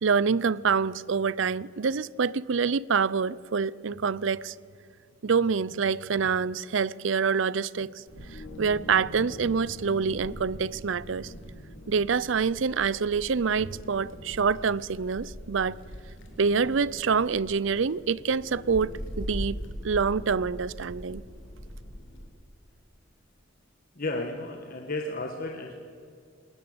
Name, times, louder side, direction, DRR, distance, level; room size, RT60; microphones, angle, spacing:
voice 1, 0.0-4.5 5.2-11.3 11.9-15.8 16.4-19.6 19.8-21.2, right 5 dB, 70° right, 0.5 m, -26 dB
Wind, 8.1-22.3, equal, 70° left, 3.2 m, -42 dB
voice 2, 23.9-25.8, left 2 dB, 45° left, 1.4 m, -33 dB
21.0 x 19.5 x 8.0 m
head